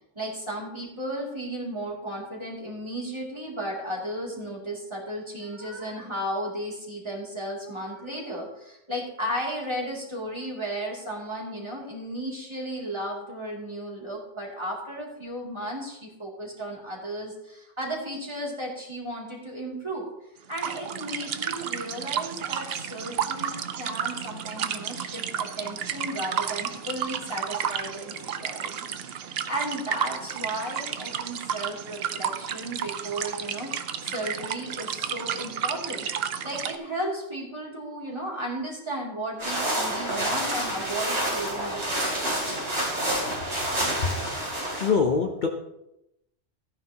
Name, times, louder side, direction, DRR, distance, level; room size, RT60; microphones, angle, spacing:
voice 1, 0.2-20.1 20.5-33.7 34.0-36.1 36.4-42.8, right 1 dB, 25° right, -3 dB, 2.7 m, -34 dB
sound 1, 20.5-36.7, right 8 dB, 65° right, 0.8 m, -32 dB
sound 2, 39.4-44.9, right 1 dB, 85° right, 3.7 m, -28 dB
voice 2, 44.0-44.3 44.7-45.5, left 5 dB, 50° left, 2 dB, 0.9 m, -24 dB
14.5 x 9.6 x 2.9 m, 0.86 s
omnidirectional pair, 1.1 m